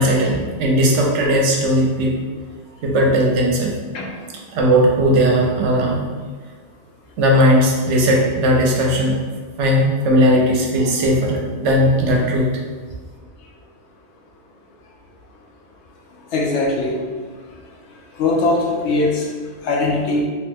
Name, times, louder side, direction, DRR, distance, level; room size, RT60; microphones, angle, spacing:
voice 1, 0.0-2.1 2.8-3.7 4.5-6.0 7.2-9.2 9.6-12.5, equal, 75° right, -1 dB, 0.9 m, -17 dB
voice 2, 16.3-17.0 18.2-19.1 19.7-20.2, left 2 dB, 70° left, -1 dB, 0.8 m, -19 dB
3.0 x 2.1 x 3.3 m, 1.5 s
omnidirectional pair, 1.3 m